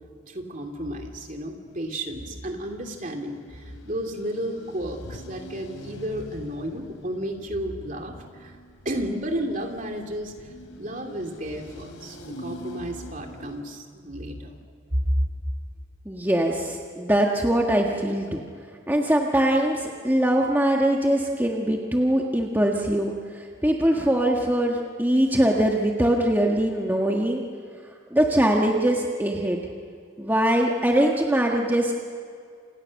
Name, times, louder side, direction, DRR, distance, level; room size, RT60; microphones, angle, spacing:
voice 1, 0.3-8.5 8.8-14.6 14.9-15.3, equal, 40° right, 3 dB, 2.8 m, -32 dB
sound 1, 1.6-13.6, equal, 90° left, 3.3 m, -45 dB
voice 2, 16.0-18.4 18.9-27.4 28.1-29.6 30.2-31.9, right 1 dB, 10° right, 0 dB, 1.6 m, -22 dB
29.0 x 28.5 x 6.6 m, 2.2 s
head